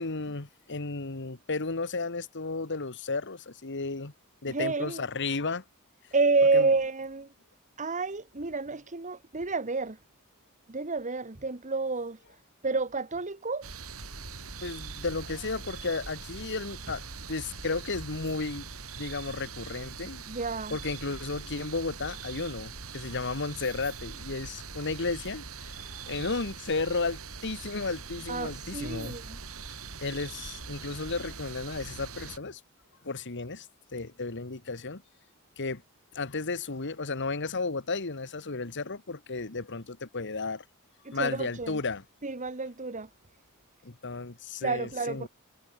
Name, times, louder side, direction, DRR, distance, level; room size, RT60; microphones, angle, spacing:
voice 1, 0.0-4.1 4.4-5.6 6.5-6.7 14.6-18.7 19.0-20.2 20.7-29.2 30.0-32.6 33.0-33.7 33.9-35.0 35.6-35.8 36.1-40.7 41.1-42.0 43.8-45.3, left 3 dB, 55° left, 1.6 m, -33 dB
voice 2, 4.5-5.0 6.1-7.3 7.8-10.0 10.7-12.2 12.6-13.7 20.3-20.8 28.3-29.4 41.0-41.8 42.2-43.1 44.6-45.3, right 3 dB, 35° right, 1.5 m, -29 dB
sound 1, 13.6-32.4, right 5 dB, 70° right, 3.8 m, -42 dB
head